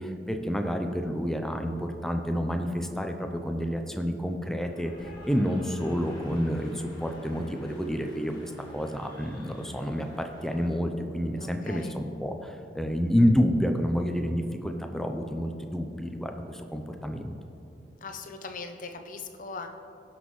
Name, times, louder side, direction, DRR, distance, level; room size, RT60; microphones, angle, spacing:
voice 1, 0.0-17.3, equal, ahead, 4 dB, 0.5 m, -29 dB
Cheering / Applause, 4.4-10.7, left 1 dB, 25° left, 2.0 m, -51 dB
voice 2, 11.4-12.0 18.0-19.7, left 4 dB, 45° left, 6 dB, 0.7 m, -40 dB
16.5 x 6.1 x 3.1 m, 2.7 s
head